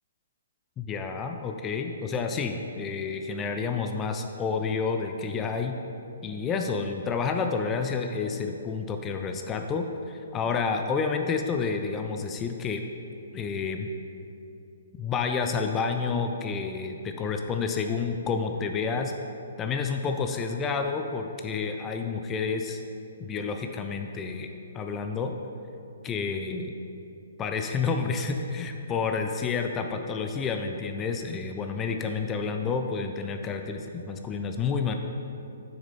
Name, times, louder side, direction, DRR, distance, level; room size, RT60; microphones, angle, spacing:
voice 1, 0.8-5.8 6.2-12.8 13.3-13.9 15.0-19.1 19.6-22.8 23.2-24.5 24.7-25.3 26.0-26.7 27.4-35.0, left 5 dB, 20° left, 5 dB, 0.4 m, -29 dB
7.0 x 6.2 x 4.2 m, 2.7 s
hypercardioid pair, 135°, 0 cm